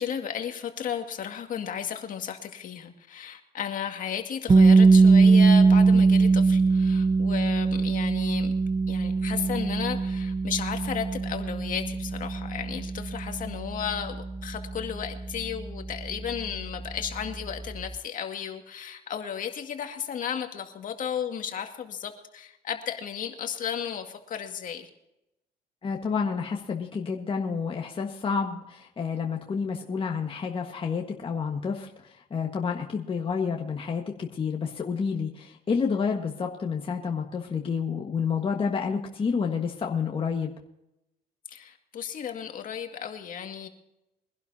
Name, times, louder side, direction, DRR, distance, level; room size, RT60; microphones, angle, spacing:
voice 1, 0.0-8.5 8.9-24.9 41.5-43.7, left 8 dB, 50° left, 5 dB, 2.1 m, -34 dB
sound 1, 4.5-16.3, right 4 dB, 25° right, 0.8 m, -21 dB
voice 2, 25.8-40.5, left 5 dB, 30° left, 1 dB, 1.6 m, -29 dB
23.0 x 11.5 x 2.8 m, 0.88 s
cardioid pair, 110°, 17 cm